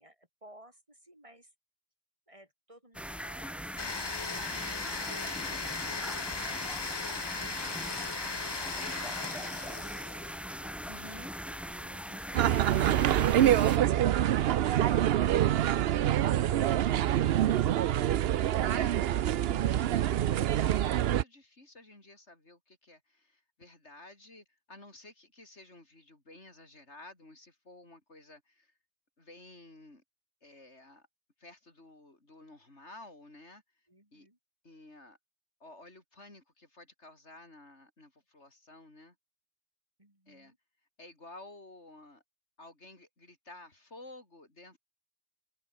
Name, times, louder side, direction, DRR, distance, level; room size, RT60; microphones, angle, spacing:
voice 1, 0.0-1.5 2.3-7.7 8.5-10.2 10.6-12.4 33.9-34.4 40.0-40.6, right 1 dB, 30° right, 5.2 m, -58 dB
sound 1, 2.9-13.8, equal, ahead, 2.0 m, -40 dB
Domestic sounds home sounds, 3.8-10.4, left 4 dB, 25° left, 0.7 m, -37 dB
voice 2, 10.9-11.3 14.6-15.1 18.6-19.1 19.4-28.7 29.2-30.0 30.4-31.1 31.4-33.6 34.1-34.3 34.6-35.2 35.6-39.2 40.3-40.5 41.0-42.2 42.6-44.8, left 2 dB, 90° left, 5.5 m, -52 dB
sound 2, 12.3-21.2, right 11 dB, 65° right, 0.8 m, -26 dB
omnidirectional pair, 1.1 m